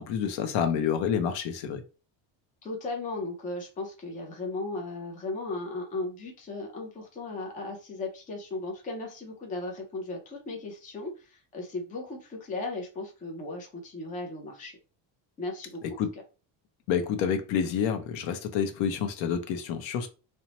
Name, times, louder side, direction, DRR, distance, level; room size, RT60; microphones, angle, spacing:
voice 1, 0.0-1.8 16.0-16.1 16.9-20.1, left 7 dB, 70° left, 0.6 m, -28 dB
voice 2, 2.6-14.8 15.4-16.0, left 2 dB, 20° left, 0.4 m, -36 dB
2.9 x 2.1 x 2.8 m
cardioid pair, 175°, 47 cm